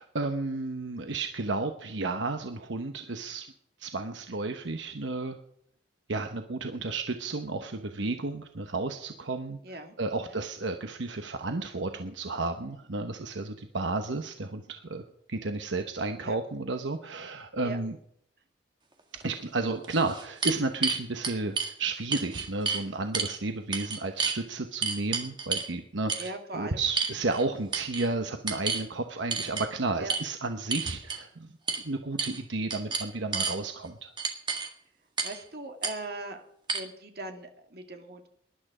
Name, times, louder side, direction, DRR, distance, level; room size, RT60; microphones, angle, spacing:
voice 1, 0.0-3.5 3.8-5.4 6.1-9.6 10.0-15.0 15.3-18.0 19.2-31.5 31.8-34.1, right 3 dB, 75° right, 6 dB, 1.0 m, -32 dB
voice 2, 9.6-10.0 16.2-16.4 17.6-17.8 26.2-26.8 30.0-30.1 35.2-36.4 36.7-38.3, right 2 dB, 55° right, 4 dB, 2.2 m, -39 dB
green empty beer bottles, 19.2-19.3 19.8-21.7 22.1-22.8 23.1-23.4 23.7-24.4 24.8-25.7 26.1-26.3 27.0-27.4 27.7-28.1 28.5-28.9 29.3-29.7 30.1-30.2 30.7-31.2 31.7-31.8 32.2-32.4 32.7-33.6 34.2-34.7 35.2-35.4 35.8-35.9 36.7-36.8, right 5 dB, 25° right, 1.8 m, -30 dB
19.0 x 11.5 x 5.0 m, 0.69 s
head